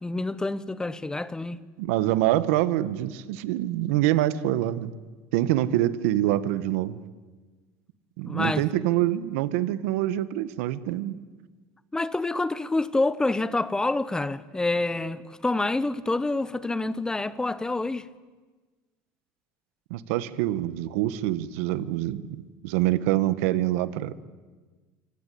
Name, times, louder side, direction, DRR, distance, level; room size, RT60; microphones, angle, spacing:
voice 1, 0.0-1.6 8.3-8.6 11.9-18.1, left 2 dB, 10° left, 1.0 m, -27 dB
voice 2, 1.8-4.9 5.3-7.0 8.2-11.2 19.9-24.1, right 14 dB, 85° right, 1.4 m, -25 dB
26.5 x 25.5 x 8.6 m
cardioid pair, 130°, 7 cm